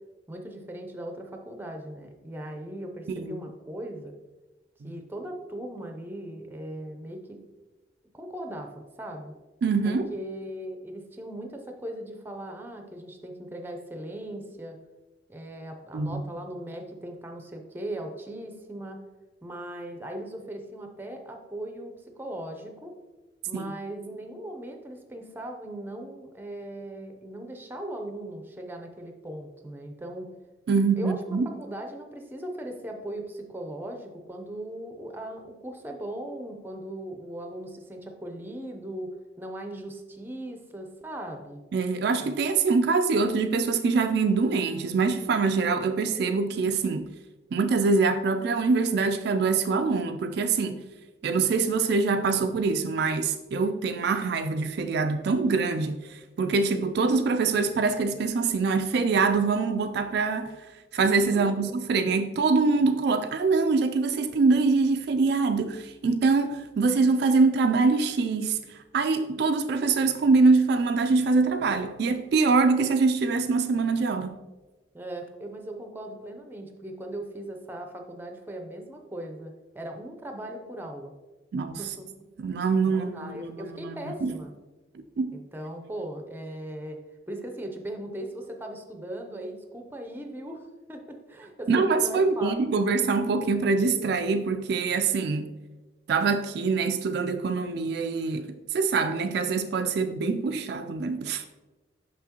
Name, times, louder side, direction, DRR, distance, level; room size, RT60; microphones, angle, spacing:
voice 1, 0.3-4.1 4.8-7.4 8.1-9.3 9.8-14.8 15.3-19.0 19.4-22.9 23.5-30.3 31.0-39.1 39.4-41.6 61.3-61.6 74.9-81.1 81.8-82.1 82.8-84.5 85.3-87.0 87.3-92.8, right 1 dB, 10° right, 0.6 m, -38 dB
voice 2, 9.6-10.1 15.9-16.2 23.5-23.7 30.7-31.5 41.7-47.1 47.5-50.8 51.2-56.0 56.4-60.5 60.9-68.6 68.9-74.4 81.5-81.8 82.4-83.9 84.2-84.3 85.2-85.3 91.7-95.5 96.1-101.4, right 4 dB, 60° right, 0.3 m, -24 dB
5.9 x 5.9 x 2.9 m
head